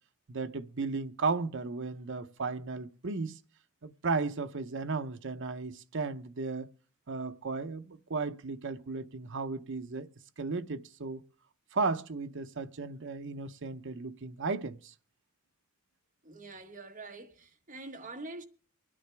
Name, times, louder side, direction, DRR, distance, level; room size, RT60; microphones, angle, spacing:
voice 1, 0.3-3.4 3.8-6.7 7.1-10.1 10.4-11.2 11.7-14.9, right 4 dB, 60° right, 0.7 m, -35 dB
voice 2, 16.2-18.4, right 2 dB, 40° right, 1.4 m, -45 dB
24.0 x 9.9 x 3.4 m
head